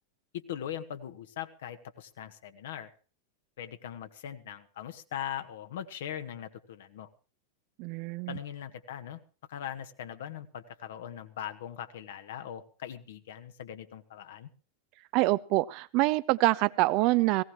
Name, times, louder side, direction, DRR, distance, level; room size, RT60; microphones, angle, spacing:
voice 1, 0.3-2.9 3.6-7.1 8.3-9.2 9.5-14.5, left 10 dB, 55° left, 9 dB, 1.5 m, -40 dB
voice 2, 7.8-8.4 15.1-17.4, right 20 dB, 45° right, 16 dB, 0.6 m, -25 dB
18.0 x 17.5 x 3.1 m, 0.38 s
figure-of-eight pair, 90°, 0 cm